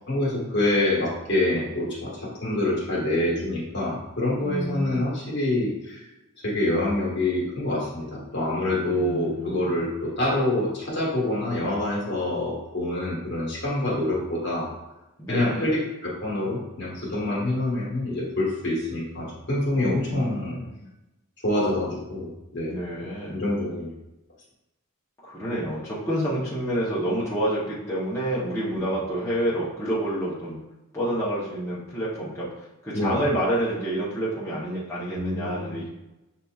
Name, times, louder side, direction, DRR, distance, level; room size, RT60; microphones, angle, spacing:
voice 1, 0.1-6.0 6.4-14.7 15.3-20.6 21.4-22.7 23.3-23.9 28.8-28.9 32.9-33.2 35.1-35.8, left 1 dB, 50° left, -4 dB, 1.3 m, -26 dB
voice 2, 4.4-5.1 8.8-9.7 15.2-15.7 19.8-20.9 22.7-23.4 25.2-30.6 30.9-32.5 32.8-35.9, right 1 dB, 15° left, -9 dB, 0.8 m, -28 dB
6.4 x 2.8 x 2.3 m, 0.96 s
head